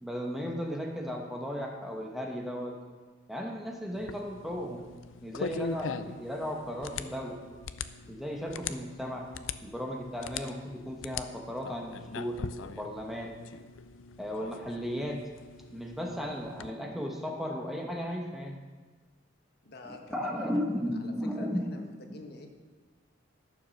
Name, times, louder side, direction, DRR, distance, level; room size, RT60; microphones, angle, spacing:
voice 1, 0.0-2.8 3.3-4.8 5.2-7.4 8.1-9.3 9.6-13.4 14.2-15.2 15.7-18.6 19.8-21.7, equal, ahead, 1 dB, 1.1 m, -35 dB
sound 1, 3.9-16.7, left 5 dB, 80° left, 0.5 m, -42 dB
voice 2, 19.6-22.6, left 2 dB, 55° left, 4 dB, 1.2 m, -48 dB
12.0 x 7.1 x 6.4 m, 1.4 s
head